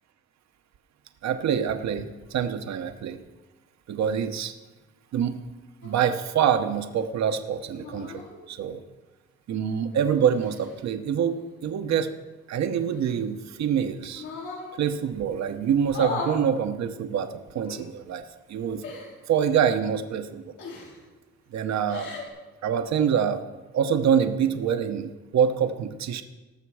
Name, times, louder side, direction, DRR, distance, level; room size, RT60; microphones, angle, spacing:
voice 1, 1.2-3.2 3.9-4.5 5.1-5.4 5.8-8.8 9.5-12.1 12.5-14.2 14.8-18.2 18.5-19.0 19.3-20.5 21.5-22.1 22.6-23.4 23.7-26.2, right 8 dB, 65° right, 8 dB, 1.0 m, -25 dB
sound 1, 5.8-6.1 7.7-8.3 9.7-10.8 12.8-13.6 14.1-14.7 15.8-16.4 17.6-17.8 18.8-19.2 20.6-21.0 21.7-22.3, left 3 dB, 85° left, 3.9 m, -37 dB
19.0 x 6.8 x 4.8 m, 1.2 s
cardioid pair, 90°, 30 cm